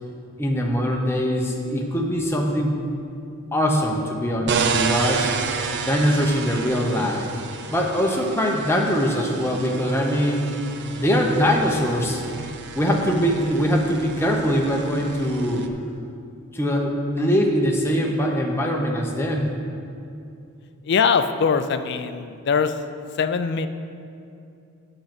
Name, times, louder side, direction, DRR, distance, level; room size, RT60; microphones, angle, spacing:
voice 1, 0.4-2.9 3.5-5.3 5.8-7.3 7.7-10.4 11.0-12.5 12.7-15.7 16.5-19.5, equal, 10° left, 0 dB, 0.8 m, -22 dB
sound 1, 4.5-15.7, right 5 dB, 50° right, 0.5 m, -30 dB
voice 2, 20.8-22.8 23.2-23.7, left 6 dB, 50° left, 10 dB, 0.4 m, -22 dB
7.8 x 5.9 x 5.9 m, 2.6 s
head